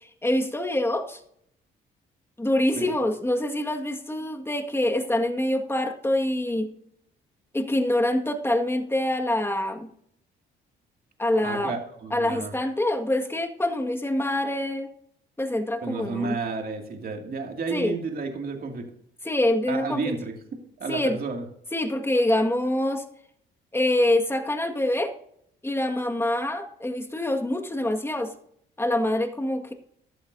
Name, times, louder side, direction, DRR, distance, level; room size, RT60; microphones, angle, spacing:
voice 1, 0.0-1.2 2.4-6.7 7.5-9.9 11.2-11.7 12.1-14.9 15.4-16.4 17.7-17.9 19.2-20.1 20.9-21.2 21.7-23.0 23.7-25.1 25.6-28.3 28.8-29.7, left 1 dB, 10° left, 4 dB, 1.8 m, -25 dB
voice 2, 11.4-12.5 15.8-18.9 19.7-20.3 20.8-21.4, right 4 dB, 50° right, 2 dB, 2.4 m, -31 dB
14.5 x 11.5 x 2.7 m, 0.67 s
cardioid pair, 90°, 20 cm